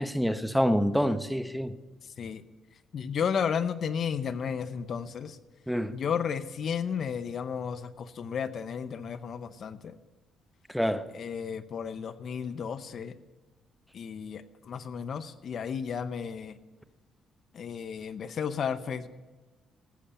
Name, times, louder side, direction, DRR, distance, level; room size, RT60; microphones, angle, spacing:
voice 1, 0.0-1.7 5.7-5.9 10.7-11.1, equal, ahead, 11 dB, 0.9 m, -27 dB
voice 2, 2.9-5.4 5.9-9.9 11.1-13.1 13.9-16.5 17.5-19.1, left 7 dB, 55° left, 13 dB, 0.7 m, -33 dB
13.0 x 8.6 x 8.5 m, 1.2 s
cardioid pair, 90°, 0 cm